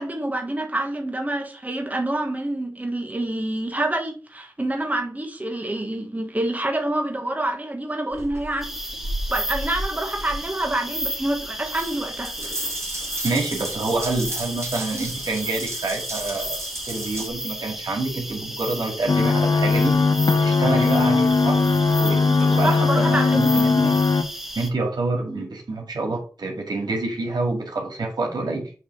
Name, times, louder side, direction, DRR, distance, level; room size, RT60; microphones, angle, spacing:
voice 1, 0.0-8.8 9.3-12.5 22.6-23.5, right 1 dB, 20° right, 1.4 m, -27 dB
Water tap faucet / Bathtub (filling or washing) / Drip, 8.1-17.3, right 1 dB, 40° right, 1.6 m, -34 dB
sound 1, 8.6-24.7, equal, 5° right, 1.1 m, -33 dB
voice 2, 13.2-16.6 16.9-20.0 20.3-21.7 22.0-23.9 24.6-28.7, right 2 dB, 85° right, 2.1 m, -27 dB
sound 2, 19.1-24.2, left 4 dB, 60° left, 0.7 m, -19 dB
7.2 x 3.4 x 5.3 m
wide cardioid pair, 55°, 7 cm